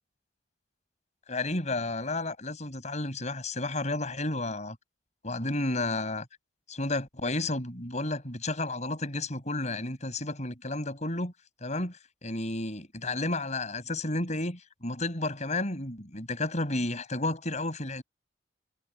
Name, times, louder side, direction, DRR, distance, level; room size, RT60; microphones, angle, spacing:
voice 1, 1.3-4.8 5.2-6.3 6.7-11.3 11.6-12.0 12.2-18.0, left 2 dB, 40° left, 6.6 m, -32 dB
head